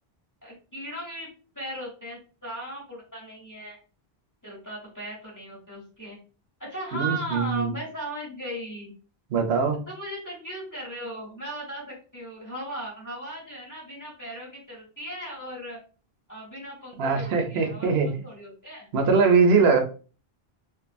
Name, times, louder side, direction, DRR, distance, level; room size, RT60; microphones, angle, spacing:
voice 1, 0.4-3.8 4.4-6.2 6.6-8.9 9.3-9.4 9.9-15.8 16.3-18.9, right 1 dB, 20° left, -4 dB, 0.8 m, -37 dB
voice 2, 6.9-7.7 9.3-9.8 17.0-18.1 18.9-19.8, right 5 dB, 75° right, 5 dB, 0.8 m, -21 dB
2.4 x 2.3 x 2.5 m, 0.36 s
omnidirectional pair, 1.0 m